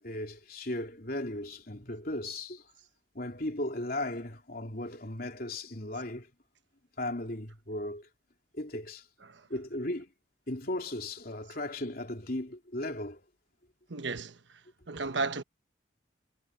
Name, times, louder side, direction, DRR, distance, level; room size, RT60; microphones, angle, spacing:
voice 1, 0.0-2.7 3.1-6.3 7.0-8.1 8.5-9.0 9.5-10.1 10.5-13.2, left 1 dB, 50° left, 3.4 m, -36 dB
voice 2, 13.9-14.6 14.9-15.4, right 3 dB, 75° right, 1.1 m, -34 dB
head